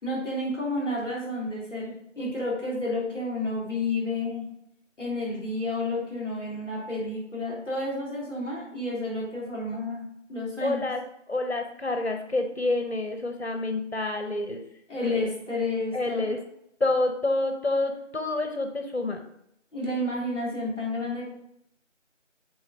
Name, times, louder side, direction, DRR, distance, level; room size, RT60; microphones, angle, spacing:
voice 1, 0.0-4.4 5.0-10.0 10.3-10.8 14.9-16.4 19.7-21.3, left 2 dB, ahead, -5 dB, 2.4 m, -30 dB
voice 2, 10.6-11.0 11.3-14.6 15.1-15.2 15.9-16.4 16.8-19.2, left 2 dB, 55° left, 5 dB, 0.8 m, -28 dB
6.3 x 4.2 x 4.9 m, 0.77 s
figure-of-eight pair, 170°, 38 cm